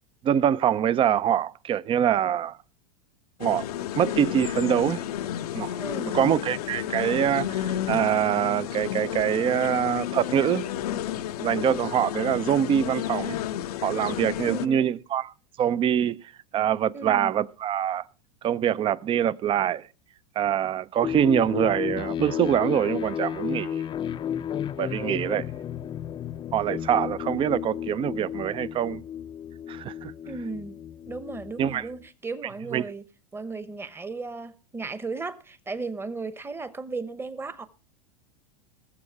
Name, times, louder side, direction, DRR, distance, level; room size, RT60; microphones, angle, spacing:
voice 1, 0.2-2.6 3.4-3.7 3.9-5.0 5.5-5.8 6.1-10.7 11.4-13.4 13.8-15.3 15.6-16.2 16.5-18.0 18.4-19.9 20.4-23.8 24.8-25.5 26.5-29.0 29.7-30.1 31.6-31.9 32.7-32.8, right 9 dB, 25° right, 0.5 m, -24 dB
sound 1, 3.4-14.7, left 11 dB, 75° left, 0.7 m, -31 dB
voice 2, 5.8-6.2 14.4-14.9 16.9-17.3 30.3-30.8 31.1-33.0 33.3-37.7, right 3 dB, 10° right, 1.0 m, -35 dB
sound 2, 21.0-32.0, left 9 dB, 25° left, 0.6 m, -33 dB
20.0 x 7.1 x 4.6 m
hypercardioid pair, 105°, 20 cm